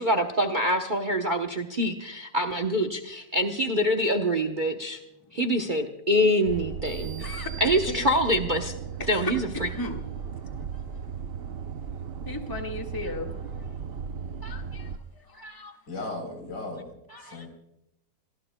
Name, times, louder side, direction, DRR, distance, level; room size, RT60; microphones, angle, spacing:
voice 1, 0.0-5.0 5.3-7.2 7.6-8.7 9.1-9.7, equal, 40° right, 7 dB, 0.8 m, -25 dB
sound 1, 6.5-15.0, right 7 dB, 85° right, 0.5 m, -36 dB
sound 2, 6.8-8.6, right 8 dB, 50° left, 3.0 m, -44 dB
voice 2, 7.2-7.5 7.9-8.0 9.0-10.0 12.3-13.3 14.4-14.9 15.4-15.7 17.1-17.5, left 2 dB, 10° left, 2 dB, 1.6 m, -35 dB
voice 3, 15.9-17.5, left 2 dB, 85° left, 4 dB, 4.4 m, -37 dB
26.5 x 19.0 x 2.2 m, 0.85 s
omnidirectional pair, 1.9 m